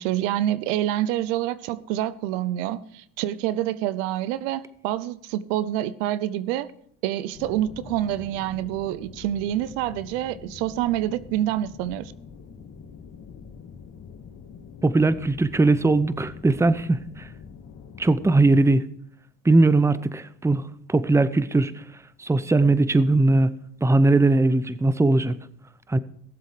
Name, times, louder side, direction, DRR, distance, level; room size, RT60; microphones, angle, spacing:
voice 1, 0.0-6.7 7.0-12.1, right 13 dB, 85° right, 0.7 m, -27 dB
sound 1, 7.3-18.4, left 6 dB, 55° left, 2.1 m, -44 dB
voice 2, 14.8-17.3 18.0-18.8 19.4-20.6 20.9-21.7 22.2-23.5 23.8-25.4 25.9-26.0, right 2 dB, 5° right, 0.7 m, -19 dB
17.5 x 7.6 x 4.9 m
supercardioid pair, 80°, 38 cm